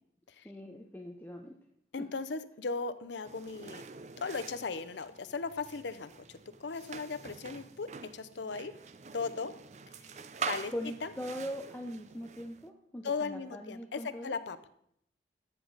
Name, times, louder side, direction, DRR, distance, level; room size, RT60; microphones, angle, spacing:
voice 1, 0.4-1.6 2.0-2.1 10.4-14.4, equal, 10° left, 2 dB, 0.6 m, -41 dB
voice 2, 1.9-3.8 4.2-8.7 9.1-9.5 10.0-10.7 11.0-11.1 13.0-14.6, left 4 dB, 80° left, 12 dB, 0.6 m, -37 dB
sound 1, 3.2-12.7, right 5 dB, 40° right, 0.4 m, -45 dB
14.0 x 6.6 x 4.0 m, 0.72 s
head